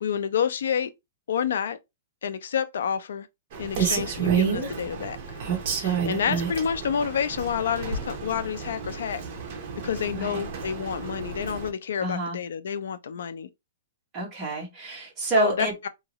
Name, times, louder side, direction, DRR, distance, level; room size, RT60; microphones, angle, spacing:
voice 1, 0.0-0.9 1.3-1.8 2.2-3.3 3.6-5.4 5.8-9.2 9.8-13.5 15.3-15.9, left 8 dB, 75° left, 0.4 m, -29 dB
Rain, 3.5-11.7, right 7 dB, 35° right, 0.8 m, -30 dB
voice 2, 12.0-12.4 14.1-15.7, right 3 dB, 15° right, 1.1 m, -28 dB
2.7 x 2.5 x 2.9 m
hypercardioid pair, 175°, 0 cm